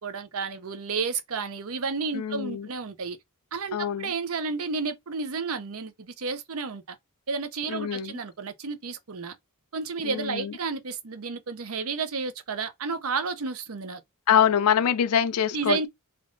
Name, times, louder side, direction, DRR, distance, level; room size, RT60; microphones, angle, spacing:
voice 1, 0.0-3.2 3.5-7.0 7.3-9.4 9.7-14.0 15.5-15.9, right 4 dB, 70° right, 0.7 m, -31 dB
voice 2, 2.1-2.7 3.7-4.1 7.7-8.2 10.0-10.5 14.3-15.8, left 8 dB, 75° left, 0.4 m, -24 dB
3.4 x 2.5 x 3.7 m
head